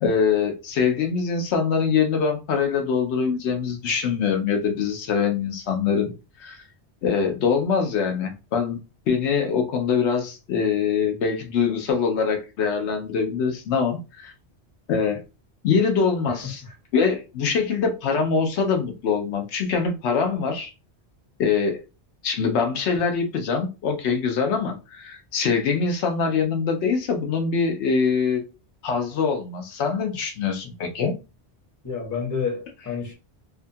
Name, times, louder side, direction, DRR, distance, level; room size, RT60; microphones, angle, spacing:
voice 1, 0.0-6.1 6.4-6.6 7.0-8.8 9.1-14.3 14.9-15.2 15.6-16.6 16.9-20.7 21.4-21.8 22.2-28.4 28.8-31.1, left 5 dB, 80° left, 0.9 m, -23 dB
voice 2, 31.8-33.1, left 6 dB, 20° left, 0.7 m, -29 dB
2.7 x 2.3 x 2.6 m
omnidirectional pair, 1.1 m